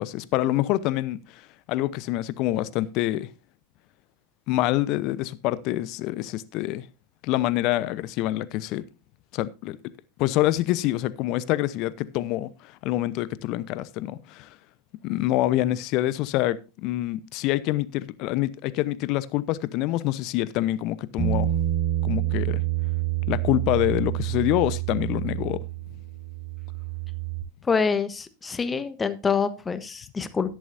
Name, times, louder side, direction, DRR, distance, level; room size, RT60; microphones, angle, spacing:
voice 1, 0.0-1.4 1.7-3.3 4.5-6.8 7.2-8.8 9.3-9.8 10.2-14.5 15.0-21.5 22.0-22.6 23.3-25.6, left 15 dB, 50° left, 0.9 m, -26 dB
Bass guitar, 21.2-27.4, right 14 dB, 10° right, 5.4 m, -28 dB
voice 2, 27.6-30.6, left 5 dB, 20° left, 1.3 m, -26 dB
12.5 x 10.5 x 2.7 m
hypercardioid pair, 90°, 0 cm